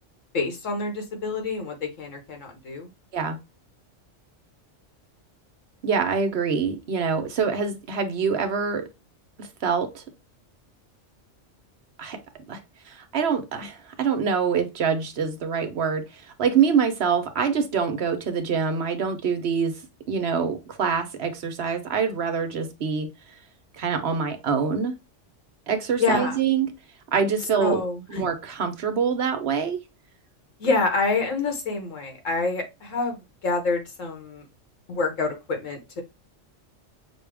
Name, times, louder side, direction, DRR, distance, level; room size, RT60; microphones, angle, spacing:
voice 1, 0.3-2.9 26.0-26.4 27.6-28.2 30.6-34.4 34.9-36.0, left 3 dB, 85° left, 1.7 m, -27 dB
voice 2, 5.8-8.9 9.4-10.0 12.0-12.2 12.5-12.6 12.9-16.0 16.4-19.8 20.1-23.1 23.8-24.9 25.7-26.7 27.1-27.8 28.1-29.8, right 6 dB, 60° right, 1.0 m, -25 dB
5.8 x 2.4 x 3.3 m
omnidirectional pair, 1.3 m